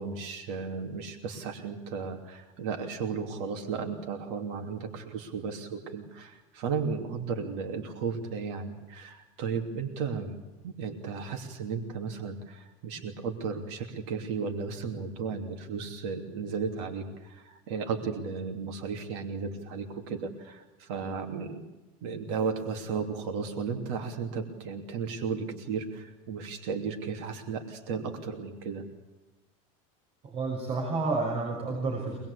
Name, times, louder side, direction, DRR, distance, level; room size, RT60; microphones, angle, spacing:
voice 1, 0.0-10.4 10.6-21.6 22.0-28.8, right 5 dB, 55° right, 4 dB, 2.9 m, -34 dB
voice 2, 30.2-32.2, right 3 dB, 35° right, -3 dB, 6.0 m, -30 dB
25.0 x 21.0 x 8.4 m, 1.1 s
cardioid pair, 175°, 17 cm